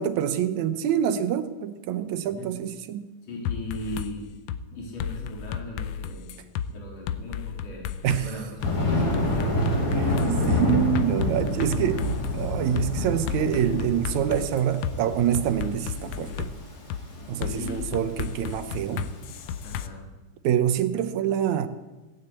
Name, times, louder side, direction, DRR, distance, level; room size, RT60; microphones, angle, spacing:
voice 1, 0.0-3.0 8.0-8.4 9.9-12.1 12.3-16.5 17.3-19.1 20.4-21.7, right 10 dB, 75° right, 10 dB, 2.1 m, -26 dB
voice 2, 3.2-4.3 4.7-6.3 6.7-7.9 8.2-10.7 17.4-17.9 19.6-20.0, left 1 dB, 55° left, -2 dB, 4.6 m, -38 dB
sound 1, 3.5-4.1 4.5-4.6 5.0-6.7 7.1-8.3 8.6-8.7 9.1-12.4 12.8-12.9 13.3-14.9 15.3-16.5 16.9-17.0 17.4-19.9, left 9 dB, 75° left, 1.6 m, -33 dB
Thunder, 8.6-19.7, left 1 dB, 35° left, 2.6 m, -28 dB
17.0 x 9.3 x 8.5 m, 1.2 s
omnidirectional pair, 3.5 m